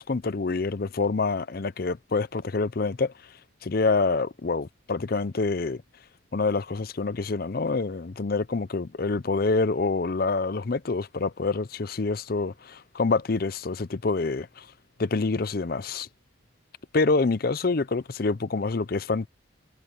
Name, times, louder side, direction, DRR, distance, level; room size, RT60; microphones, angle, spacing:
voice 1, 0.0-3.1 3.6-5.8 6.3-14.7 15.0-16.1 16.9-19.3, left 3 dB, 50° left, 0.6 m, -26 dB
head